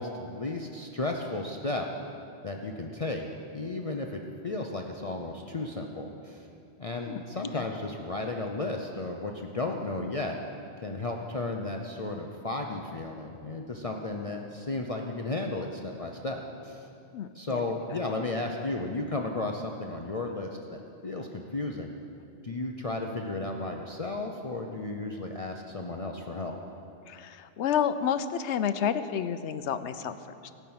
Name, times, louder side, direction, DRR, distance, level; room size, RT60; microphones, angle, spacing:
voice 1, 0.0-1.9 2.4-3.2 3.5-6.5 6.8-10.4 10.8-16.9 17.3-21.9 22.4-26.5, left 2 dB, 35° left, 1 dB, 0.7 m, -34 dB
voice 2, 17.1-17.6 17.9-18.0 27.1-30.2 30.4-30.5, left 8 dB, 80° left, 12 dB, 0.9 m, -30 dB
18.0 x 6.0 x 8.7 m, 2.6 s
omnidirectional pair, 1.2 m